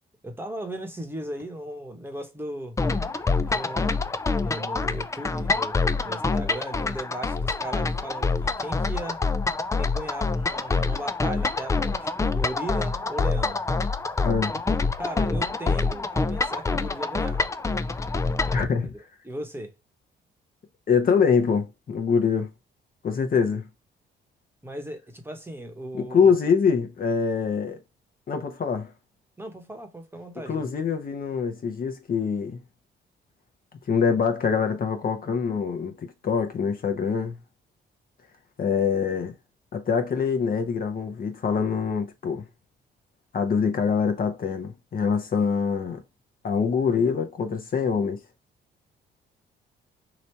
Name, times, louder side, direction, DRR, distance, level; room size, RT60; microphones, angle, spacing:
voice 1, 0.2-2.8 3.4-4.0 4.4-9.3 9.8-13.7 15.0-17.5 18.8-19.8 24.6-26.4 29.4-30.7, right 1 dB, 10° right, 1.0 m, -37 dB
sound 1, 2.8-18.6, left 3 dB, 15° left, 0.3 m, -26 dB
voice 2, 18.5-18.9 20.9-22.5 23.0-23.6 25.9-27.8 28.3-28.9 30.5-32.6 33.9-35.9 36.2-37.4 38.6-39.3 39.7-42.4 43.3-46.0 46.4-48.2, left 6 dB, 45° left, 1.0 m, -24 dB
3.0 x 2.8 x 4.4 m
cardioid pair, 90°, 20 cm